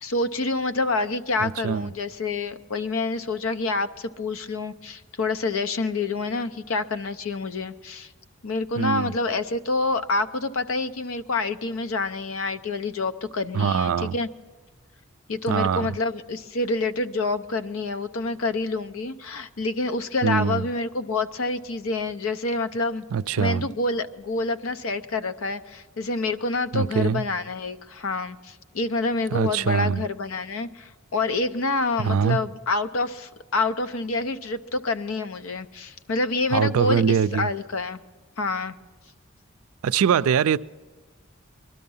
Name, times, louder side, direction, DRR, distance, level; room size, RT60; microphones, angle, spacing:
voice 1, 0.0-8.1 8.4-14.3 15.3-23.0 23.4-38.0 38.4-38.8, left 3 dB, 80° left, 0.6 m, -27 dB
voice 2, 1.4-1.9 8.8-9.1 13.5-14.2 15.5-15.9 20.2-20.7 23.1-23.7 26.7-27.2 29.3-30.0 32.0-32.4 36.5-37.5 39.8-40.6, right 7 dB, 85° right, 0.4 m, -23 dB
21.0 x 12.5 x 5.5 m
head